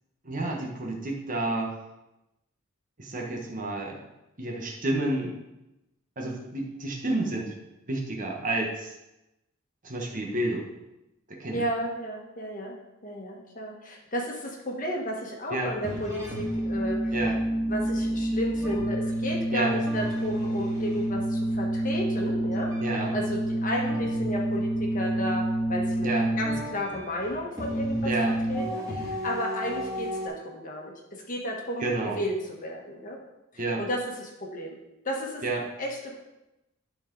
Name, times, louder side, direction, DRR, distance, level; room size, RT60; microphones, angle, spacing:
voice 1, 0.2-1.7 3.0-4.0 4.4-5.4 6.2-7.5 7.9-9.0 9.8-10.7 11.3-11.7 15.5-15.7 17.1-17.4 19.5-19.8 22.8-23.1 26.0-26.3 28.0-28.3 31.8-32.2 33.6-33.8 35.4-35.6, right 2 dB, 40° right, 0 dB, 1.2 m, -30 dB
voice 2, 11.5-12.7 13.0-17.1 17.7-22.7 23.1-25.4 25.7-26.1 26.4-28.1 28.5-32.3 32.6-33.2 33.5-34.8 35.0-35.4 35.8-36.2, equal, 40° left, 0 dB, 1.4 m, -33 dB
sound 1, 15.5-30.3, right 1 dB, 15° right, 1.7 m, -29 dB
11.5 x 4.4 x 3.9 m, 0.95 s
head